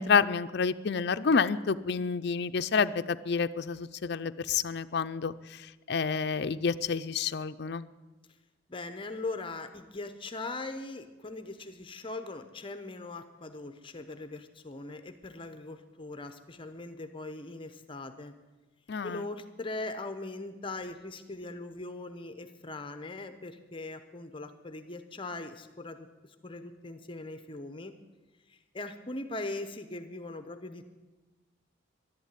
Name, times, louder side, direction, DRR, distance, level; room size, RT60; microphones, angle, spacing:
voice 1, 0.0-7.9 18.9-19.2, left 5 dB, 60° left, 11 dB, 0.5 m, -29 dB
voice 2, 8.7-18.3 19.0-26.1 26.4-27.9 28.5-30.9, left 2 dB, 25° left, 9 dB, 0.8 m, -40 dB
11.5 x 11.5 x 9.1 m, 1.2 s
head